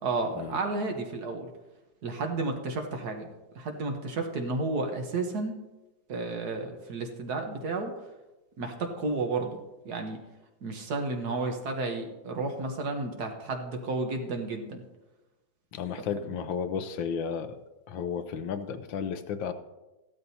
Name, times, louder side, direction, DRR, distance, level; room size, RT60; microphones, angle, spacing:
voice 1, 0.0-1.5 2.0-3.3 3.5-5.6 6.1-7.9 8.6-9.6 9.8-10.2 10.6-14.8, right 3 dB, 55° right, 3 dB, 1.6 m, -32 dB
voice 2, 15.7-17.6 17.9-19.5, left 7 dB, 75° left, 10 dB, 1.4 m, -33 dB
15.5 x 12.5 x 2.8 m, 1.1 s
omnidirectional pair, 2.1 m